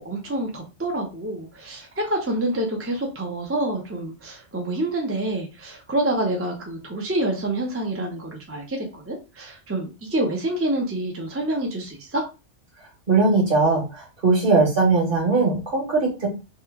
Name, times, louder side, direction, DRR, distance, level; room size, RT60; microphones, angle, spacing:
voice 1, 0.0-12.2, right 1 dB, 15° right, 1 dB, 0.5 m, -27 dB
voice 2, 13.1-13.8 14.2-16.3, right 3 dB, 50° right, -2 dB, 1.5 m, -19 dB
3.0 x 2.3 x 3.5 m, 0.29 s
omnidirectional pair, 1.2 m